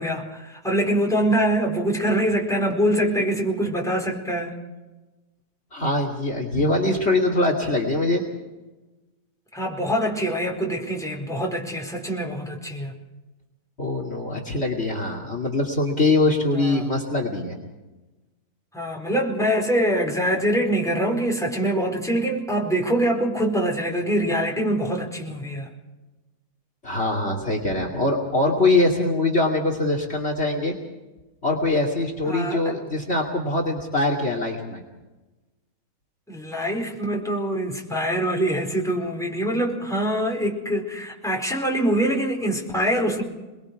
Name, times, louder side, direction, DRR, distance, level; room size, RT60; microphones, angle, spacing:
voice 1, 0.0-4.5 9.5-13.0 16.5-16.9 18.7-25.7 32.2-32.6 36.3-43.2, right 1 dB, ahead, -1 dB, 4.6 m, -24 dB
voice 2, 5.7-8.2 13.8-17.6 26.8-30.7 31.4-34.8, left 2 dB, 40° left, 2 dB, 2.8 m, -23 dB
29.0 x 21.0 x 4.8 m, 1.1 s
omnidirectional pair, 1.6 m